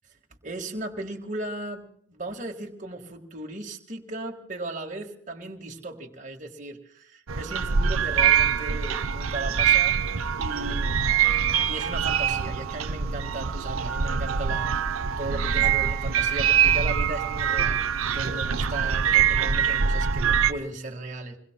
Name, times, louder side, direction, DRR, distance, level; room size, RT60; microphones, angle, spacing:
voice 1, 0.4-10.0 10.4-11.1 11.7-14.7 15.2-21.4, right 2 dB, 35° right, 2 dB, 1.7 m, -36 dB
sound 1, 7.3-20.5, right 7 dB, 85° right, 0.7 m, -24 dB
27.5 x 22.0 x 2.2 m, 0.67 s
head